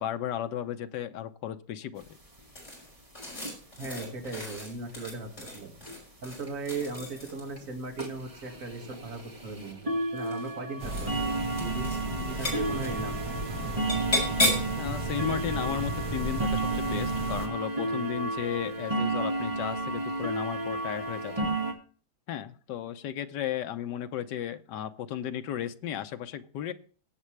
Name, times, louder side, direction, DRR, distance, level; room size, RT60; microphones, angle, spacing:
voice 1, 0.0-2.1 14.8-21.5 22.3-26.7, left 10 dB, 85° left, 9 dB, 1.4 m, -35 dB
sound 1, 2.0-2.1 2.4-2.5 2.7-2.8 3.2-3.5 4.3-4.4 4.9-5.0 5.4-5.5 5.9-6.0 6.5-6.6 7.0-7.1 7.6-7.7 8.0-21.7, right 2 dB, 20° right, 1.9 m, -33 dB
sound 2, 2.6-7.6 8.8-9.4 10.1-10.6 10.8-11.3 11.5-12.0 12.2-12.9 13.9-14.8, left 1 dB, 40° left, 5.7 m, -33 dB
voice 2, 3.8-5.3 5.5-5.7 6.2-11.9 12.2-13.1 13.5-13.9, right 3 dB, 50° right, 1 dB, 2.6 m, -38 dB
sound 3, 10.8-17.5, right 2 dB, 70° right, 2.2 m, -35 dB
17.5 x 8.3 x 3.3 m, 0.41 s
omnidirectional pair, 1.8 m